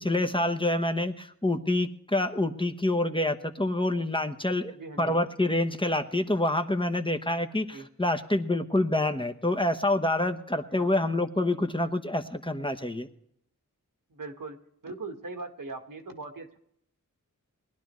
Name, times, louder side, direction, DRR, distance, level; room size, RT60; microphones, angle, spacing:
voice 1, 0.0-13.1, left 1 dB, 15° left, 5 dB, 1.0 m, -27 dB
voice 2, 4.7-5.2 7.5-7.9 10.7-10.9 14.1-14.6 14.8-16.6, right 3 dB, 80° right, 4 dB, 1.7 m, -40 dB
20.0 x 11.5 x 3.1 m, 0.70 s
wide cardioid pair, 70°, 32 cm